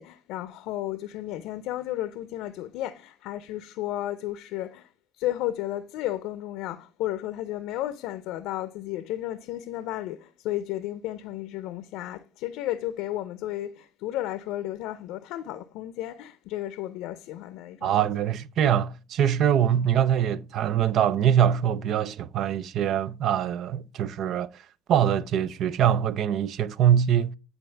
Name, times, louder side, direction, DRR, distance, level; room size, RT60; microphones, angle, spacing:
voice 1, 0.0-4.9 5.2-18.1, left 14 dB, 75° left, 0.5 m, -33 dB
voice 2, 17.8-27.3, right 9 dB, 65° right, 0.4 m, -23 dB
9.8 x 4.0 x 3.3 m
supercardioid pair, 70°, 0 cm